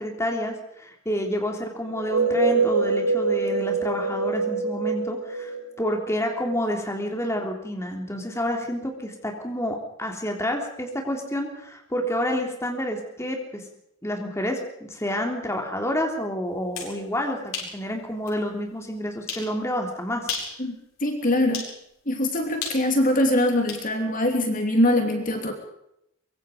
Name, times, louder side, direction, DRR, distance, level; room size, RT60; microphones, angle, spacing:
voice 1, 0.0-13.6 14.0-20.3, equal, 15° left, 2 dB, 3.5 m, -29 dB
sound 1, 1.9-6.5, right 4 dB, 60° right, 2.8 m, -25 dB
sound 2, 16.5-17.0 17.5-17.8 18.3-18.4 19.3-19.5 20.2-20.6 21.5-21.7 22.6-23.9, left 5 dB, 85° left, 7.8 m, -33 dB
voice 2, 21.0-21.6 22.1-25.5, left 1 dB, 40° left, 4 dB, 3.0 m, -22 dB
24.5 x 23.5 x 5.2 m, 0.77 s
head